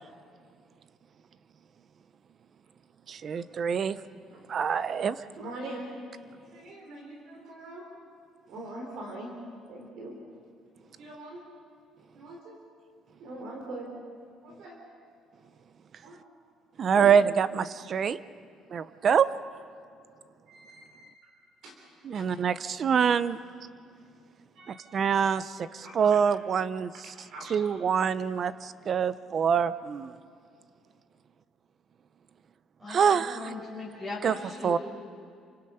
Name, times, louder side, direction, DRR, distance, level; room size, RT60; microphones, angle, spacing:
voice 1, 3.1-4.0 4.5-5.2 16.8-18.2 18.7-19.3 22.0-23.4 24.7-26.9 27.5-30.1 32.9-33.5 34.2-34.3 34.6-34.8, right 7 dB, 30° right, 16 dB, 0.5 m, -25 dB
voice 2, 5.4-5.9 6.4-7.9 8.5-9.3 9.7-10.2 11.0-11.5 12.1-12.6 13.2-13.9 14.4-14.8 16.0-16.2 16.9-17.1 20.5-21.1 21.6-21.8 22.1-22.3 24.5-24.9 25.8-26.2 27.3-27.5, right 2 dB, 55° right, 0 dB, 3.6 m, -42 dB
voice 3, 32.8-34.8, left 2 dB, 5° right, -8 dB, 5.6 m, -39 dB
29.0 x 25.5 x 5.6 m, 2.3 s
cardioid pair, 180°, 0 cm